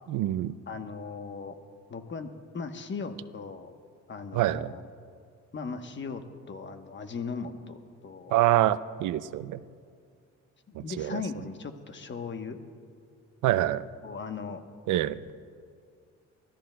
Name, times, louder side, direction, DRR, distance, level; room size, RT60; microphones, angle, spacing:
voice 1, 0.1-0.5 4.3-4.7 8.3-9.6 10.8-11.2 13.4-13.8 14.9-15.3, right 14 dB, 80° right, 15 dB, 0.5 m, -26 dB
voice 2, 0.7-1.5 1.9-3.7 4.1-4.8 5.5-8.4 10.7-12.6 14.0-14.6, left 5 dB, 40° left, 7 dB, 1.1 m, -38 dB
30.0 x 13.0 x 2.3 m, 2.2 s
cardioid pair, 90°, 30 cm